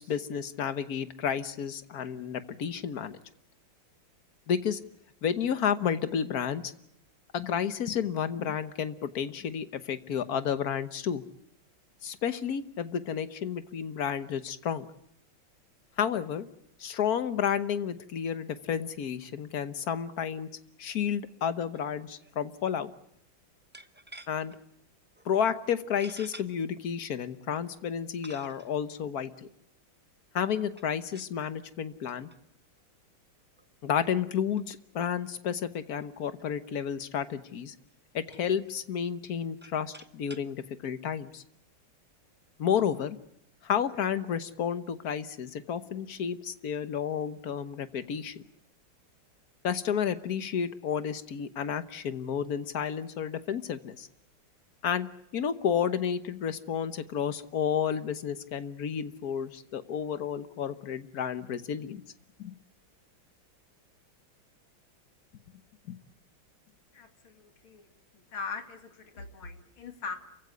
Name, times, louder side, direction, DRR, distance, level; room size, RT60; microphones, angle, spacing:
voice 1, 0.0-3.2 4.5-4.8 5.2-6.7 7.3-11.2 12.0-14.9 16.0-16.5 16.8-20.5 20.8-22.9 24.3-24.5 25.2-29.3 30.3-32.3 33.8-37.7 38.1-41.4 42.6-43.2 43.6-48.4 49.6-54.1 54.8-62.0 62.4-62.5 65.9-66.0, left 8 dB, 55° left, 11 dB, 1.5 m, -31 dB
sound 1, 21.7-21.9 22.2-22.3 23.7-24.6 25.1-25.3 26.0-26.5 27.3-27.4 28.2-28.8 30.7-31.4 32.1-32.4 32.8-32.9 33.6-33.7 34.0-34.2 34.6-34.7 34.9-35.0 35.3-35.4 35.8-36.8 37.4-37.6 37.9-38.7 39.3-40.5, right 1 dB, 10° right, 0.5 m, -50 dB
voice 2, 66.9-67.9 68.1-70.2, left 5 dB, 85° left, 5 dB, 3.1 m, -41 dB
28.0 x 16.0 x 9.6 m, 0.77 s
omnidirectional pair, 2.2 m